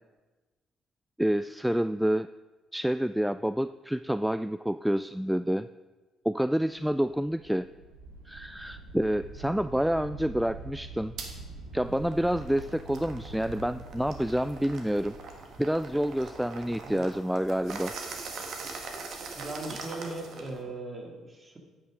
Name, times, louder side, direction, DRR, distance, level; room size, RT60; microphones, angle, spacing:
voice 1, 1.2-2.3 2.7-5.7 6.3-7.7 8.3-11.1 11.7-15.1 15.6-17.9, equal, 5° right, 13 dB, 0.3 m, -28 dB
sound 1, 6.7-16.6, right 3 dB, 85° right, 1.7 m, -45 dB
sound 2, 11.2-11.3 11.8-20.6, right 4 dB, 60° right, 1.6 m, -42 dB
voice 2, 19.4-21.6, right 2 dB, 30° right, 1 dB, 2.6 m, -39 dB
9.6 x 8.7 x 5.1 m, 1.2 s
hypercardioid pair, 45°, 0 cm